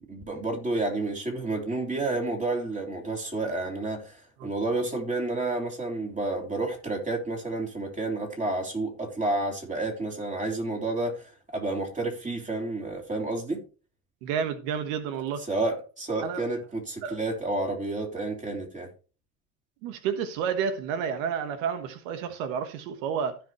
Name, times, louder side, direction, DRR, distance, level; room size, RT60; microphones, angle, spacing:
voice 1, 0.0-13.6 15.5-18.9, right 2 dB, 20° right, 3.2 m, -30 dB
voice 2, 14.2-15.4 16.2-16.4 17.0-17.2 19.8-23.4, right 7 dB, 85° right, 1.4 m, -30 dB
15.5 x 5.2 x 3.1 m
supercardioid pair, 115°, 39 cm